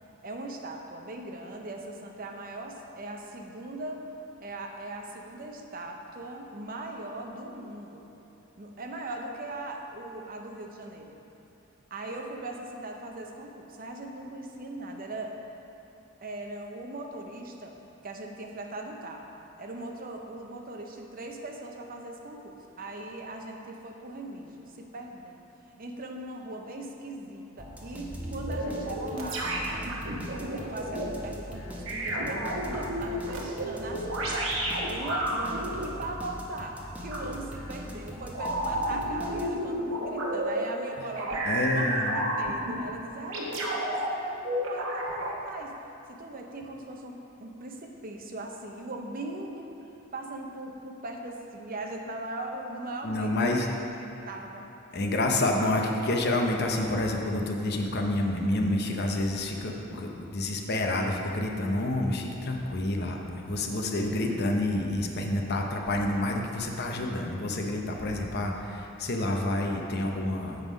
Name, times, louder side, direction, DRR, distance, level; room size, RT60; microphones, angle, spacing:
voice 1, 0.2-4.1 4.4-8.1 8.6-11.2 11.9-15.4 16.2-17.7 18.0-19.3 19.6-29.5 30.3-34.4 34.8-45.8 46.1-54.6, right 2 dB, 45° right, 2 dB, 0.7 m, -39 dB
sound 1, 27.6-39.8, equal, 5° right, 0.9 m, -41 dB
sound 2, 28.1-31.0 31.9-35.8 37.1-37.3 38.3-40.6 41.1-42.8 43.3-44.1 44.4-45.4, right 1 dB, 70° right, 1.1 m, -31 dB
voice 2, 41.4-42.2 53.0-53.7 54.9-70.6, left 1 dB, 50° left, 2 dB, 0.7 m, -28 dB
7.9 x 5.5 x 5.1 m, 3.0 s
head